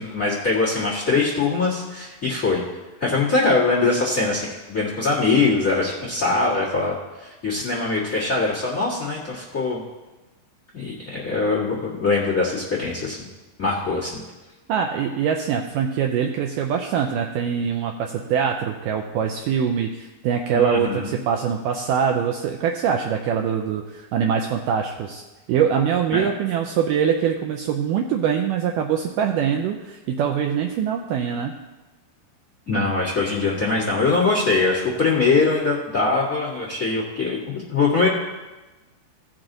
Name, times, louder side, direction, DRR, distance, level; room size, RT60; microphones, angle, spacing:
voice 1, 0.0-2.6 3.0-9.8 10.7-13.3 13.6-14.2 20.5-21.1 26.1-26.3 32.7-38.1, left 3 dB, 40° left, -5 dB, 1.1 m, -22 dB
voice 2, 14.7-25.2 25.5-31.5, right 7 dB, 85° right, 3 dB, 1.9 m, -23 dB
16.5 x 6.1 x 3.9 m, 1.1 s
omnidirectional pair, 4.4 m